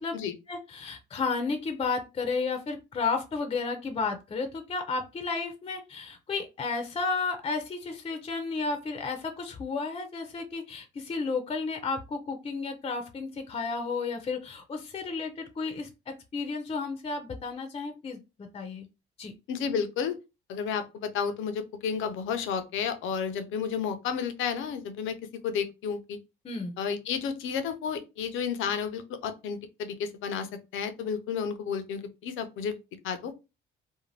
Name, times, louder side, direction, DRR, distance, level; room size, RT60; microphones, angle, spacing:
voice 1, 0.5-18.9 19.2-19.3 26.4-26.8, left 4 dB, 30° left, 0.5 m, -32 dB
voice 2, 19.5-20.2 20.5-25.2 25.4-26.2 26.8-32.8 33.0-33.3, left 6 dB, 80° left, 0.5 m, -32 dB
2.5 x 2.1 x 3.2 m
cardioid pair, 90°, 20 cm